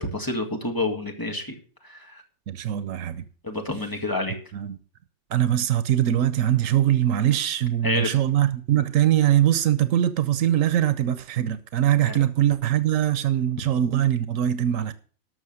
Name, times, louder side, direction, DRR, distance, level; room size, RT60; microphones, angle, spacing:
voice 1, 0.0-1.5 1.8-2.2 3.4-4.4 7.8-8.1 12.0-12.2, left 2 dB, 15° left, 1.8 m, -28 dB
voice 2, 2.5-3.3 4.5-4.8 5.3-14.9, right 11 dB, 90° right, 1.1 m, -22 dB
12.5 x 6.2 x 6.2 m
omnidirectional pair, 1.3 m